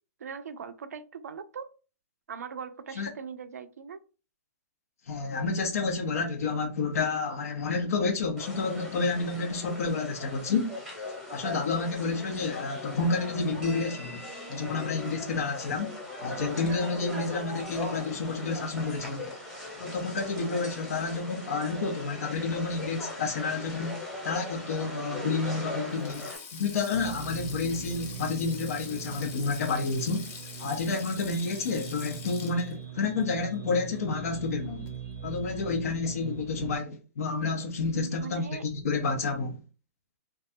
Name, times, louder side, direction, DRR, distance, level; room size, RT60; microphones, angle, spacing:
voice 1, 0.2-1.7 2.3-4.0 27.6-27.8 37.9-38.6, right 6 dB, 85° right, 0.4 m, -40 dB
voice 2, 5.1-10.7 11.3-14.2 14.5-15.9 16.2-19.3 19.8-24.0 24.2-30.3 30.6-34.9 35.2-39.6, left 4 dB, 70° left, 0.6 m, -30 dB
sound 1, 8.4-26.4, left 2 dB, ahead, 0.9 m, -39 dB
Sink (filling or washing), 25.9-34.4 34.6-34.9 36.1-36.3, left 5 dB, 25° left, 0.5 m, -45 dB
sound 2, 26.9-36.8, right 8 dB, 25° right, 0.5 m, -42 dB
2.3 x 2.3 x 2.6 m
hypercardioid pair, 135°, 8 cm